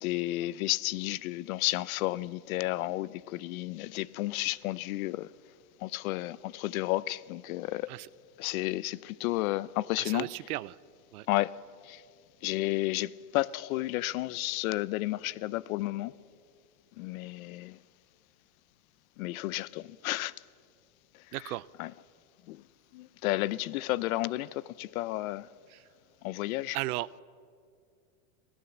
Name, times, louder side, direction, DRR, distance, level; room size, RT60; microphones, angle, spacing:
voice 1, 0.0-5.3 5.8-7.9 8.4-10.3 11.3-11.5 11.8-12.0 12.4-16.1 17.0-17.8 19.2-20.3 21.4-21.9 22.5-22.6 22.9-25.5 26.2-26.8, left 17 dB, 70° left, 0.7 m, -32 dB
voice 2, 10.0-10.8 11.1-11.3 21.3-21.7 25.7-25.8 26.7-27.1, right 18 dB, 85° right, 0.7 m, -35 dB
26.5 x 16.5 x 7.2 m
supercardioid pair, 145°, 44 cm